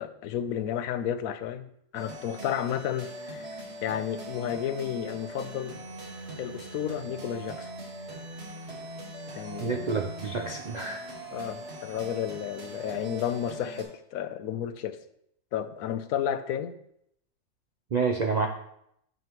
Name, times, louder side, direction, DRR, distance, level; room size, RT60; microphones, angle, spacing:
voice 1, 0.0-1.7 1.9-5.8 6.4-7.7 9.4-9.9 11.3-15.0 15.5-16.7, left 9 dB, 75° left, 11 dB, 1.0 m, -32 dB
sound 1, 1.9-13.8, right 1 dB, 45° right, 1.8 m, -41 dB
voice 2, 9.6-11.0 17.9-18.5, right 4 dB, 70° right, 3 dB, 0.4 m, -28 dB
9.3 x 6.8 x 3.0 m, 0.74 s
omnidirectional pair, 1.5 m